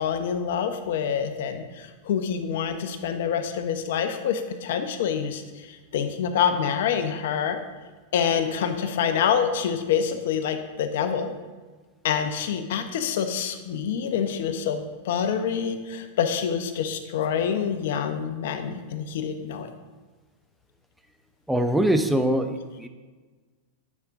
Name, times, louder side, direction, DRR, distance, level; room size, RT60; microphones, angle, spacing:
voice 1, 0.0-5.4 5.7-7.6 8.1-11.3 12.0-19.7, left 7 dB, 70° left, 8 dB, 0.8 m, -26 dB
voice 2, 21.5-22.9, right 1 dB, 5° right, 7 dB, 0.6 m, -23 dB
9.7 x 5.2 x 3.6 m, 1.3 s
hypercardioid pair, 115°, 0 cm